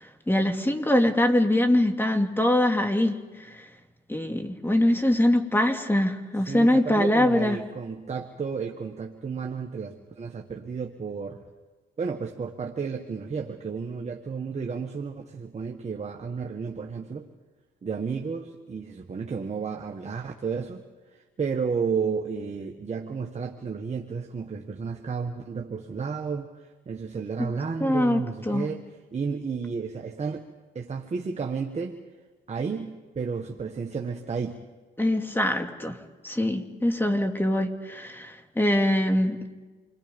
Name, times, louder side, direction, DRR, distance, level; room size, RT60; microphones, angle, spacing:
voice 1, 0.0-3.6 4.1-7.6 27.4-27.5 27.8-28.7 35.0-36.0 36.2-39.5, left 1 dB, 10° left, 5 dB, 2.4 m, -23 dB
voice 2, 6.5-11.4 12.0-17.3 17.8-20.8 21.4-26.5 26.8-28.8 29.1-30.5 30.7-32.0 32.5-34.6, right 5 dB, 35° right, 2 dB, 1.6 m, -32 dB
28.5 x 22.5 x 5.4 m, 1.3 s
cardioid pair, 90°, 20 cm